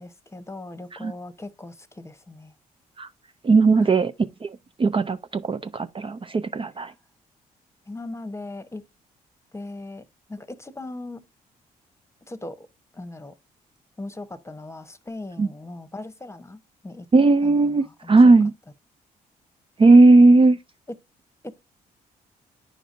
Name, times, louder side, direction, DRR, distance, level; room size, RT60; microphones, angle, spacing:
voice 1, 0.0-2.5 3.8-4.1 7.9-8.8 9.5-10.0 10.3-11.2 12.3-12.7 12.9-13.3 14.0-17.1 17.4-18.4 20.9-21.0 21.4-21.6, left 2 dB, 15° left, 1.0 m, -39 dB
voice 2, 3.4-4.1 4.4-6.9 15.4-15.5 17.1-18.5 19.8-20.6, right 3 dB, 25° right, 0.5 m, -17 dB
10.0 x 5.0 x 2.5 m
figure-of-eight pair, 40°, 19 cm